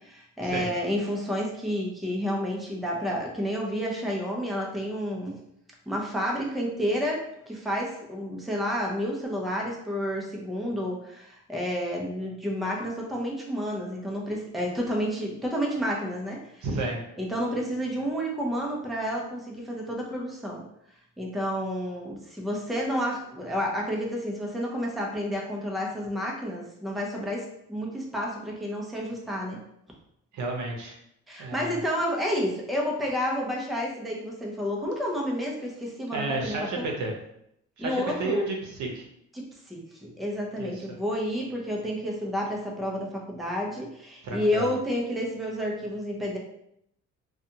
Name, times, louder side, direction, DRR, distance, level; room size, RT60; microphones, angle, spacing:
voice 1, 0.0-5.4 5.9-16.7 17.2-20.6 21.2-29.6 31.3-36.9 37.8-38.5 39.3-46.4, equal, ahead, -2 dB, 0.5 m, -30 dB
voice 2, 16.6-17.0 30.3-30.9 31.4-31.8 36.1-37.1 37.8-39.0 40.6-41.0 44.2-44.7, right 2 dB, 70° right, 1 dB, 0.7 m, -31 dB
2.5 x 2.3 x 2.7 m, 0.75 s
cardioid pair, 90°, 30 cm